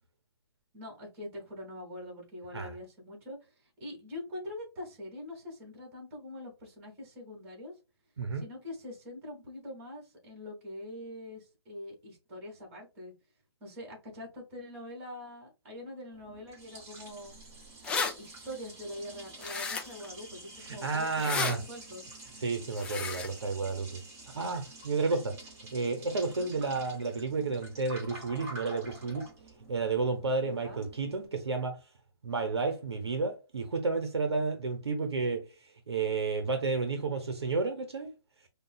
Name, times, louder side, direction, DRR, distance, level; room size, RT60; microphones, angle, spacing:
voice 1, 0.7-3.5 3.8-7.7 8.3-13.1 13.6-17.4 17.9-22.1 26.3-26.5 30.4-30.9, left 1 dB, 35° right, 2.0 m, -44 dB
Liquid, 16.1-31.3, right 2 dB, 20° right, 1.3 m, -49 dB
sound 1, 17.4-17.5 17.6-18.1 19.4-20.1 21.1-21.5 22.8-23.3, left 5 dB, 10° left, 0.3 m, -32 dB
voice 2, 20.6-21.6 22.4-24.0 24.3-25.4 25.7-29.3 29.7-31.8 32.2-35.5 35.9-38.1, right 4 dB, 85° right, 0.9 m, -31 dB
5.1 x 2.4 x 2.3 m
hypercardioid pair, 145°, 13 cm